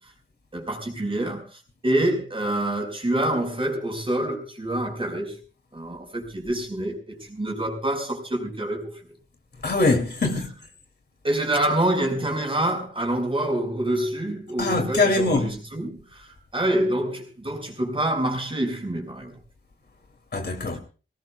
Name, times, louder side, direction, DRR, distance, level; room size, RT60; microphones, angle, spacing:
voice 1, 0.5-5.4 5.7-8.9 11.2-19.3, right 1 dB, 25° right, 5.0 m, -26 dB
voice 2, 9.6-10.5 14.6-15.6 20.3-20.8, left 2 dB, 60° left, 2.7 m, -22 dB
23.5 x 18.5 x 2.4 m
wide cardioid pair, 130°, 19 cm